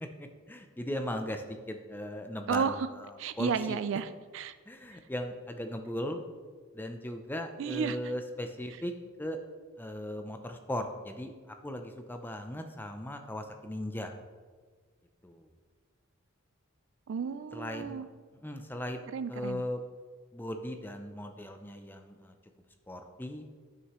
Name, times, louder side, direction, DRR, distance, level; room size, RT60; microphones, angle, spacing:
voice 1, 0.0-3.8 4.7-6.2 6.7-8.9 9.2-9.4 9.8-14.1 15.2-15.5 17.5-18.0 18.3-19.8 20.3-22.3 22.9-23.4, left 1 dB, 10° left, 6 dB, 0.4 m, -38 dB
voice 2, 2.5-2.9 3.2-4.6 7.6-8.0 17.1-18.1 19.1-19.6, right 6 dB, 60° right, 13 dB, 0.3 m, -32 dB
9.3 x 6.5 x 3.1 m, 1.5 s
head